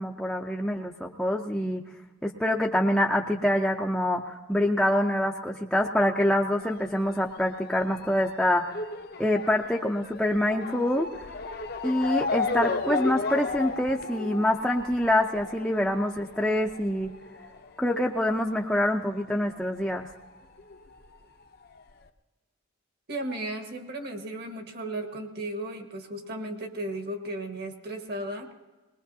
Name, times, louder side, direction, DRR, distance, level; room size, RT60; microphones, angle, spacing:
voice 1, 0.0-1.8 2.2-8.7 9.2-11.1 11.8-17.1 17.8-20.1, left 1 dB, 5° left, -1 dB, 0.5 m, -25 dB
Motor vehicle (road) / Siren, 6.6-19.6 19.9-21.1 21.7-21.8 22.1-22.2, left 4 dB, 45° left, 0.7 m, -35 dB
voice 2, 23.1-28.5, right 1 dB, 50° right, 5 dB, 1.5 m, -35 dB
21.0 x 20.0 x 2.7 m, 1.2 s
head